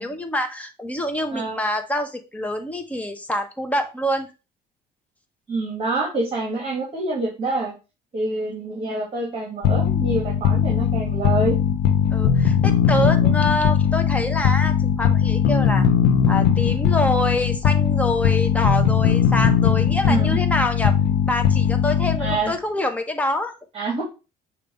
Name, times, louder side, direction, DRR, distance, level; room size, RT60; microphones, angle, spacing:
voice 1, 0.0-4.3 12.1-15.9 16.3-20.9 21.3-23.5, left 1 dB, 10° left, 5 dB, 1.1 m, -26 dB
voice 2, 5.5-7.7 8.1-11.6 20.0-20.4 22.2-22.5 23.7-24.0, right 2 dB, 35° right, -1 dB, 2.1 m, -26 dB
sound 1, 9.6-22.6, left 8 dB, 80° left, 0.7 m, -19 dB
6.7 x 2.8 x 5.1 m, 0.30 s
cardioid pair, 110°, 17 cm